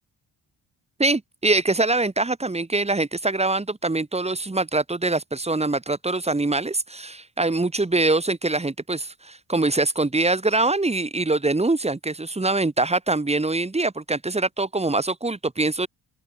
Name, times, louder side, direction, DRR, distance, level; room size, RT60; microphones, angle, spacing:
voice 1, 1.0-15.9, right 2 dB, 15° right, 2.5 m, -23 dB
supercardioid pair, 75°, 42 cm